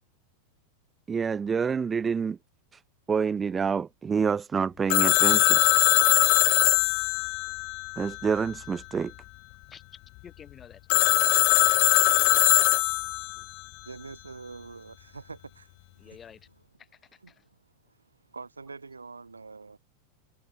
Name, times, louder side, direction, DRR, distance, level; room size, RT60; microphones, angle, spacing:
voice 1, 1.1-2.4 2.7-2.8 3.1-5.6 8.0-9.1, right 6 dB, 20° right, 0.5 m, -27 dB
Telephone, 4.9-8.5 10.9-13.4, left 28 dB, 45° left, 0.3 m, -21 dB
voice 2, 10.2-11.4 16.0-16.5 16.8-17.5, left 7 dB, 20° left, 3.8 m, -51 dB
voice 3, 13.0-13.3 13.8-16.2 17.2-17.6 17.9-19.8, right 4 dB, 80° right, 2.6 m, -45 dB
figure-of-eight pair, 90°, 0 cm